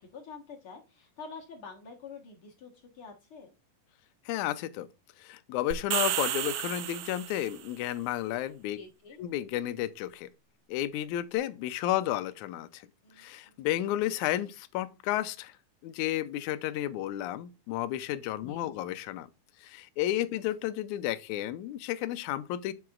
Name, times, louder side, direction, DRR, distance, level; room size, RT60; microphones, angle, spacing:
voice 1, 0.0-3.5 8.7-9.2 13.0-13.3 18.5-18.9, left 5 dB, 50° left, 1.8 m, -47 dB
voice 2, 4.3-4.9 5.2-8.8 9.2-10.3 10.7-12.8 13.2-15.6 15.8-19.3 19.6-22.7, left 13 dB, 80° left, 1.8 m, -32 dB
sound 1, 5.7-7.6, right 13 dB, 85° right, 1.5 m, -32 dB
7.5 x 7.0 x 2.4 m
omnidirectional pair, 4.0 m